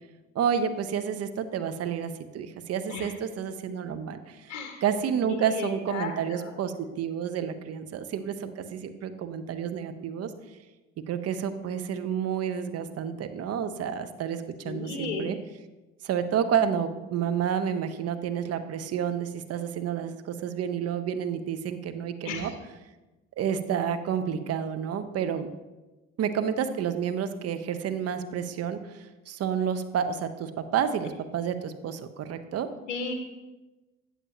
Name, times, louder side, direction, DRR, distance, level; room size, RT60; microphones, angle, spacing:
voice 1, 0.3-4.5 4.8-10.3 11.1-15.4 16.0-22.5 23.4-25.5 26.2-32.7, right 8 dB, 45° right, 9 dB, 0.7 m, -30 dB
voice 2, 4.5-4.8 5.2-6.5 14.6-15.3 22.2-22.5 32.9-33.2, left 4 dB, 85° left, 4 dB, 0.7 m, -34 dB
8.3 x 7.1 x 2.9 m, 1.1 s
hypercardioid pair, 50°, 34 cm